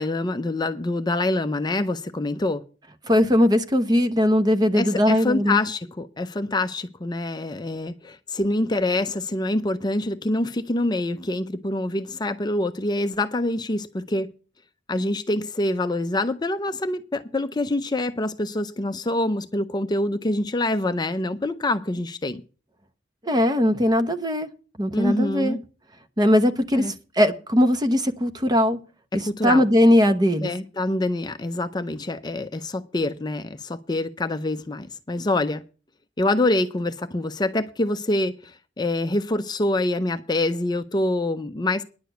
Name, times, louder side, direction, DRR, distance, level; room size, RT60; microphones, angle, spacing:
voice 1, 0.0-2.6 4.7-14.3 14.9-22.4 24.9-25.6 26.7-26.9 29.1-29.7 30.4-35.6 36.2-41.8, left 2 dB, 25° left, 0.6 m, -25 dB
voice 2, 3.1-5.6 23.2-24.5 24.8-25.6 26.2-28.8 29.1-30.5, left 1 dB, 20° right, 0.9 m, -20 dB
10.5 x 6.7 x 7.8 m
head